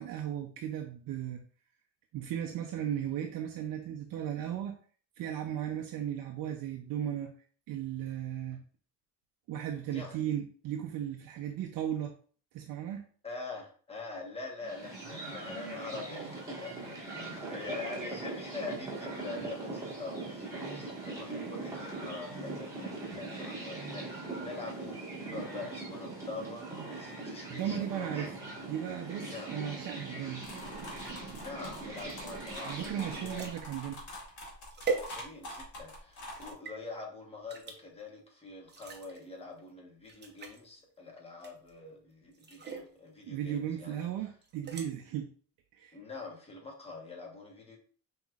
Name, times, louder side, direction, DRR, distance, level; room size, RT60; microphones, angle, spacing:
voice 1, 0.0-1.4 2.1-4.8 5.2-7.3 7.7-8.6 9.5-12.1 12.5-13.1 27.5-28.4 28.7-30.5 32.6-34.0 43.3-45.3 45.7-46.0, right 10 dB, 65° right, 4 dB, 0.6 m, -36 dB
voice 2, 9.9-10.2 13.2-28.3 29.2-29.5 31.4-32.8 33.2-33.5 35.1-44.1 45.9-47.8, left 3 dB, 15° left, 0 dB, 1.1 m, -44 dB
sound 1, 14.6-33.6, right 3 dB, 10° right, 1.4 m, -41 dB
sound 2, 30.4-36.5, left 1 dB, 50° left, 1.8 m, -45 dB
sound 3, 31.9-35.7 36.1-36.8 37.5-37.8 38.6-39.3 39.7-39.8 40.0-40.6 41.4-41.8 42.3-42.9 44.4-44.9, right 4 dB, 30° right, 0.7 m, -40 dB
5.5 x 3.0 x 2.4 m, 0.44 s
cardioid pair, 135°, 37 cm